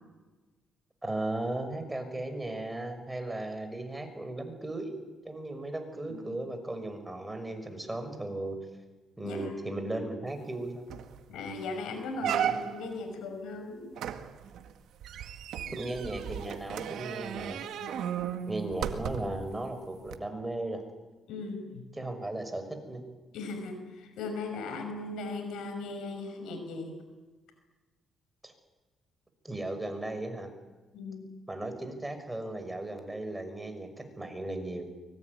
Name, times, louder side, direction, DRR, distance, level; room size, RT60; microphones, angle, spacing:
voice 1, 1.0-8.6 9.2-10.9 12.2-12.5 15.7-17.6 18.4-20.8 21.9-23.0 28.4-28.5 29.4-30.5 31.5-34.8, right 2 dB, 10° right, 7 dB, 5.7 m, -36 dB
sound 1, 10.5-10.6 10.9-11.2 11.6-11.7 12.2-13.0 14.0-19.5 20.1-20.2, right 9 dB, 80° right, 1.9 m, -35 dB
voice 2, 11.3-13.9 15.6-15.8 17.8-18.2 21.3-21.8 23.3-26.9 30.9-31.3, left 3 dB, 85° left, 6 dB, 5.7 m, -38 dB
24.0 x 22.5 x 9.6 m, 1.2 s
cardioid pair, 90°, 0 cm